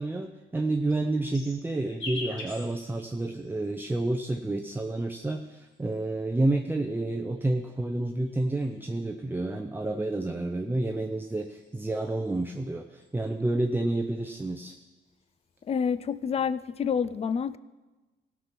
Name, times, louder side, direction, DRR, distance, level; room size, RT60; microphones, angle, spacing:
voice 1, 0.0-14.7, right 2 dB, 10° right, 4 dB, 0.7 m, -29 dB
sound 1, 0.6-4.0 4.9-6.3 7.1-9.0 10.4-12.6 13.0-13.5 13.8-14.9 15.2-15.8, left 2 dB, 70° left, 4.5 m, -46 dB
voice 2, 15.7-17.6, left 6 dB, 30° left, 16 dB, 0.4 m, -28 dB
17.0 x 6.1 x 5.9 m, 1.2 s
cardioid pair, 90°, 20 cm